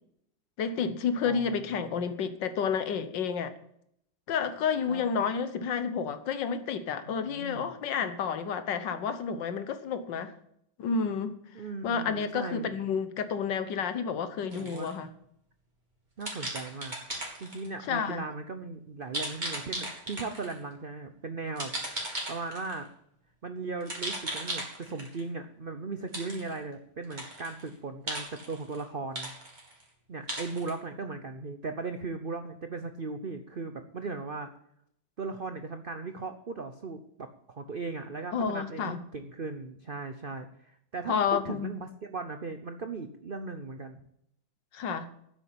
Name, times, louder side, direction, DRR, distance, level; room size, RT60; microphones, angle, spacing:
voice 1, 0.6-3.5 4.3-10.3 10.8-11.3 11.8-15.1 17.9-18.2 38.3-39.0 41.1-41.8 44.7-45.1, left 6 dB, 65° left, 1.6 m, -30 dB
voice 2, 1.2-2.0 4.9-5.0 7.3-7.8 11.5-12.7 14.5-14.9 16.2-21.7 22.3-22.9 23.4-29.3 30.1-34.5 35.2-44.0, right 3 dB, 80° right, 0.4 m, -38 dB
sound 1, 14.5-14.9 16.2-17.7 19.1-20.6 21.6-22.8 23.8-25.2 26.1-26.6 27.0-27.7 28.1-28.8 29.2-29.8 30.3-30.7, right 1 dB, 20° right, 3.2 m, -36 dB
9.8 x 8.2 x 8.4 m
omnidirectional pair, 2.1 m